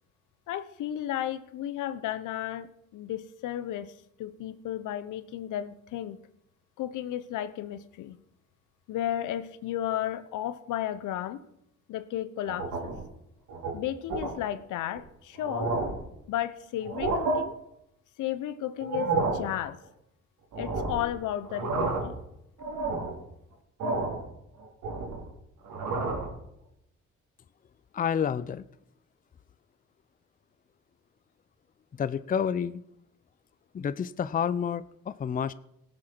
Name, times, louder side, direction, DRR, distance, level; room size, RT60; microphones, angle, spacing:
voice 1, 0.5-3.9 4.2-6.2 6.8-8.2 8.9-11.4 11.9-12.9 13.7-15.7 16.3-17.6 18.2-19.8 20.6-22.1, left 12 dB, 85° left, 13 dB, 0.9 m, -33 dB
sound 1, 12.5-13.1 13.5-13.7 14.1-14.3 14.9-15.0 15.4-16.1 16.8-17.4 18.8-19.5 20.5-21.1 21.4-22.2 22.6-23.2 23.8-24.2 24.6-25.3 25.6-26.3, right 3 dB, 85° right, 3.5 m, -30 dB
voice 2, 27.9-28.7 32.0-32.8 33.7-35.5, left 7 dB, 30° left, 16 dB, 0.5 m, -29 dB
17.5 x 7.7 x 4.5 m, 0.79 s
cardioid pair, 90°, 30 cm